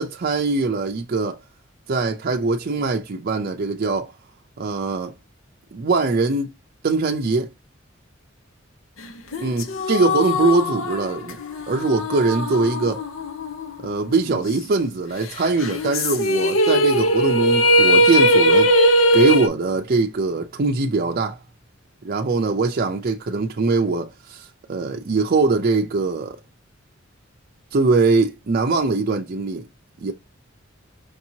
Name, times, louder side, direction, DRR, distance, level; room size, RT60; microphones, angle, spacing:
voice 1, 0.0-1.4 1.9-4.1 4.6-5.1 5.7-6.5 6.8-7.5 9.4-11.4 11.7-13.0 13.8-18.7 19.1-21.4 22.0-26.4 27.7-29.7 30.0-30.1, right 3 dB, 50° right, 0.5 m, -22 dB
sound 1, 9.3-13.9 14.3-14.4 15.6-19.5, equal, 80° left, 0.8 m, -19 dB
5.2 x 2.8 x 2.7 m
head